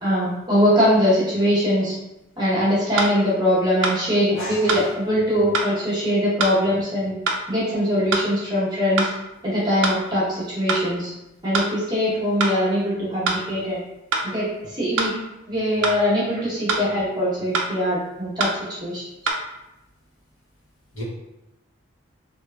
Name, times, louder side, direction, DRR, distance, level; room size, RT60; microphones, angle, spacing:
voice 1, 0.0-1.9 2.4-7.1 7.5-9.1 9.4-11.1 11.4-13.8 14.2-15.1 15.5-19.0, equal, 20° right, -8 dB, 0.8 m, -22 dB
sound 1, 3.0-3.1 3.8-4.0 4.7-4.8 5.5-5.7 6.4-6.6 7.3-7.4 8.1-8.3 9.0-9.1 9.8-10.0 10.7-10.8 11.5-11.7 12.4-12.6 13.3-13.4 14.1-14.3 15.0-15.1 15.8-16.0 16.7-16.9 17.5-17.7 18.4-18.6 19.3-19.4, right 3 dB, 65° right, 0.4 m, -23 dB
voice 2, 4.3-4.8 20.9-21.0, left 1 dB, 75° left, -6 dB, 1.0 m, -32 dB
3.0 x 2.3 x 2.2 m, 0.92 s
head